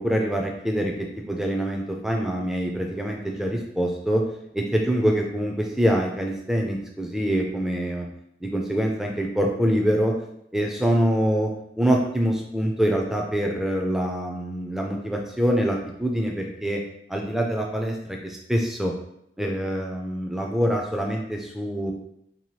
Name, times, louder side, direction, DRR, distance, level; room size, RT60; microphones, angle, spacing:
voice 1, 0.0-4.2 4.5-8.1 8.4-10.1 10.5-16.8 17.1-18.9 19.4-21.9, equal, ahead, 1 dB, 0.3 m, -25 dB
2.8 x 2.3 x 3.0 m, 0.76 s
head